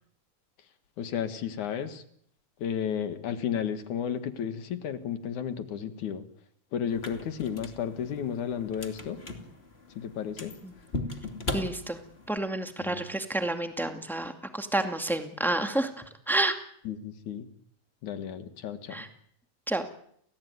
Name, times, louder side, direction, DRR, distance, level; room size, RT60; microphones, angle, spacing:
voice 1, 1.0-2.0 2.6-6.2 6.7-9.2 10.0-10.5 12.8-13.0 16.9-17.5 18.0-19.0, left 8 dB, 70° left, 10 dB, 3.0 m, -33 dB
sound 1, 6.9-12.4, left 2 dB, 20° left, 2.5 m, -39 dB
voice 2, 11.5-12.0 12.3-15.9 16.3-16.5 18.9-19.1 19.7-19.8, right 2 dB, ahead, 6 dB, 1.6 m, -29 dB
30.0 x 17.0 x 9.5 m, 0.69 s
omnidirectional pair, 3.7 m